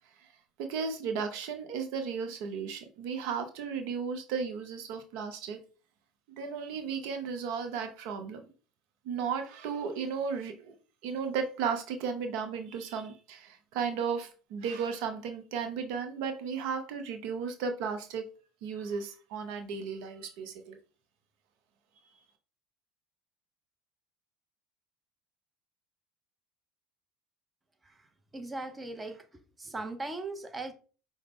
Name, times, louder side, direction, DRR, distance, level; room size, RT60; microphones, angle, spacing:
voice 1, 0.6-5.6 6.4-8.5 9.0-10.7 11.0-18.3 18.6-20.8, right 6 dB, 65° right, 0.6 m, -35 dB
voice 2, 28.3-29.2 29.6-30.7, right 2 dB, 20° right, 0.7 m, -38 dB
4.8 x 2.1 x 3.5 m
hypercardioid pair, 75°, 0 cm